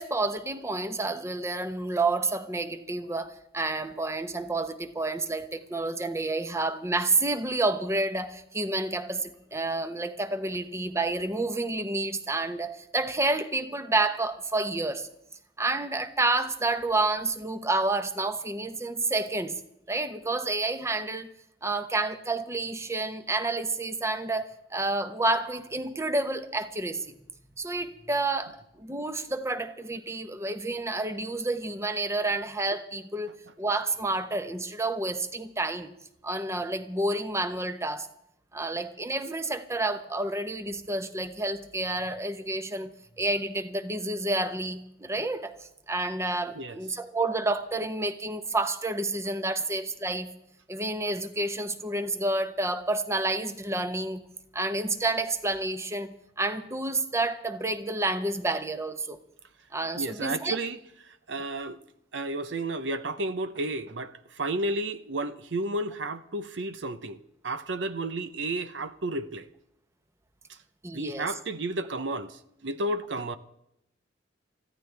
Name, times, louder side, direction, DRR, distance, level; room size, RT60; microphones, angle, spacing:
voice 1, 0.0-15.1 15.6-19.6 19.9-21.3 21.6-27.2 27.6-35.9 36.2-38.1 38.5-45.6 45.9-50.3 50.7-54.2 54.5-59.2 59.7-60.6 70.8-71.3, right 2 dB, 15° right, 1.0 m, -29 dB
voice 2, 59.9-61.8 62.1-69.5 70.5-70.6 70.9-73.4, right 2 dB, 80° right, 0.9 m, -32 dB
24.5 x 15.0 x 3.4 m
head